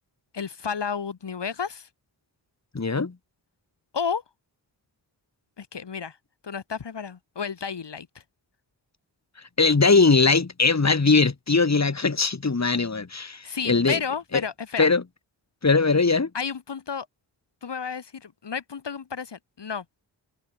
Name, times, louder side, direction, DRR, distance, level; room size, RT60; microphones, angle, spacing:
voice 1, 0.3-1.9 3.9-4.2 5.6-6.2 6.4-8.2 13.4-14.9 16.3-17.1 17.6-19.8, left 6 dB, 60° left, 2.7 m, -32 dB
voice 2, 2.7-3.1 9.6-14.0 14.8-15.0 15.6-16.3, left 4 dB, 35° left, 2.9 m, -20 dB
open air
cardioid pair, 50°, 46 cm